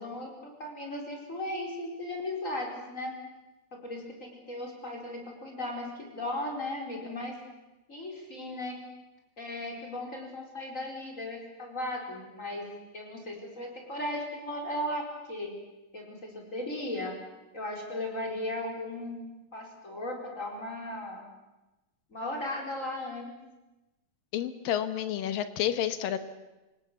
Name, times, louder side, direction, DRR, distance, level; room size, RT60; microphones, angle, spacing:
voice 1, 0.0-3.2 3.7-7.4 7.9-8.8 9.4-12.7 12.9-15.5 15.9-17.1 17.5-21.3 22.1-23.3, left 1 dB, 20° left, 1 dB, 4.7 m, -36 dB
voice 2, 24.3-26.2, left 10 dB, 75° left, 11 dB, 2.7 m, -30 dB
26.5 x 18.0 x 8.4 m, 1.1 s
omnidirectional pair, 4.2 m